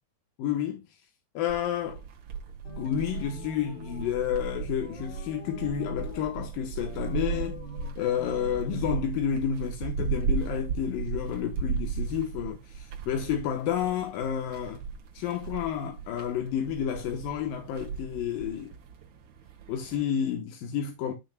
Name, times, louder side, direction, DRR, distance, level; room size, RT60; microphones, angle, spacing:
voice 1, 0.4-1.0 1.3-2.0 2.8-7.6 8.0-14.8 15.1-18.7 19.7-21.1, left 8 dB, 85° left, 2.8 m, -30 dB
sound 1, 1.5-20.0, right 5 dB, 60° right, 2.7 m, -36 dB
sound 2, 2.6-4.2 4.8-6.4 6.8-8.8, left 2 dB, 35° left, 3.5 m, -45 dB
14.5 x 6.1 x 2.3 m
omnidirectional pair, 4.0 m